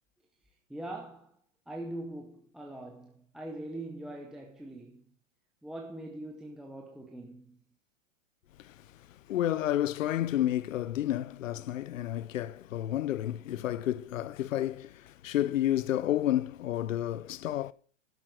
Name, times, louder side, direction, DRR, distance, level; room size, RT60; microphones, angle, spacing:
voice 1, 0.7-1.3 1.7-5.0 5.6-7.6, right 1 dB, ahead, 0.8 m, -42 dB
voice 2, 9.3-17.7, left 12 dB, 85° left, 0.7 m, -30 dB
11.5 x 7.7 x 6.1 m
hypercardioid pair, 150°, 38 cm